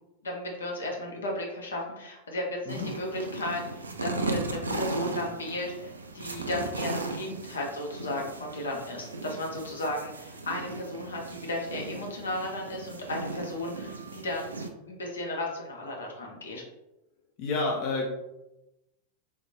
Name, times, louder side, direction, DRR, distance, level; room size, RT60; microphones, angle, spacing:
voice 1, 0.2-14.5 14.9-16.6, left 1 dB, 70° left, -1 dB, 0.8 m, -34 dB
sound 1, 2.7-14.7, right 2 dB, 75° right, 0.3 m, -37 dB
voice 2, 17.4-18.1, left 3 dB, 45° left, -1 dB, 0.5 m, -29 dB
3.4 x 2.8 x 2.7 m, 0.95 s
figure-of-eight pair, 90°, 0 cm